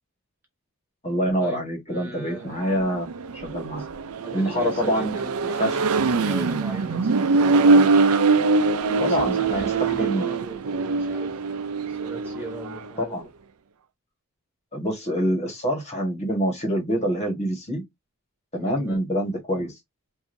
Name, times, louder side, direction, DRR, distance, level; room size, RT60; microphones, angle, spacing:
voice 1, 1.0-3.1 3.3-3.8 4.3-5.8 9.0-10.3 13.0-13.3 14.7-17.8 18.5-19.8, equal, 30° left, 1.5 m, -26 dB
voice 2, 1.9-2.6 3.7-3.9 4.2-8.1 8.9-13.2 18.6-19.0, right 1 dB, 10° right, 1.4 m, -39 dB
Accelerating revving vroom, 2.5-12.9, right 4 dB, 75° right, 0.5 m, -23 dB
4.8 x 2.7 x 2.6 m
head